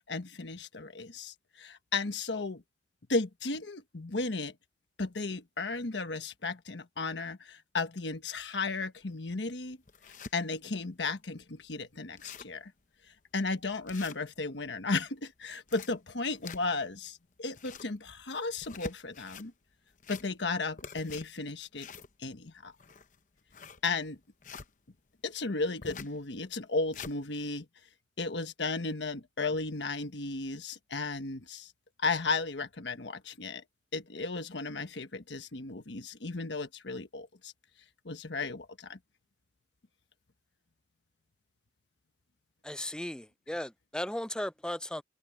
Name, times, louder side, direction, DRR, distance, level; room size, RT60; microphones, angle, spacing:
voice 1, 0.1-2.6 3.1-4.5 5.0-9.8 10.3-12.7 13.3-19.5 20.1-21.9 22.2-22.7 23.8-24.2 25.2-27.7 28.2-31.7 32.0-33.6 33.9-37.5 38.0-39.0, left 3 dB, 80° left, 1.3 m, -34 dB
sound 1, 9.0-9.1 9.6-10.3 10.9-11.0 11.3-11.4 11.7-11.8 12.0-12.6 13.1-13.2 13.9-14.7 15.4-16.9 17.4-18.0 18.5-19.5 19.9-20.5 20.8-24.7 25.8-26.2 26.6-27.2, left 5 dB, 45° left, 0.9 m, -46 dB
voice 2, 42.6-45.0, left 1 dB, 5° left, 0.5 m, -36 dB
head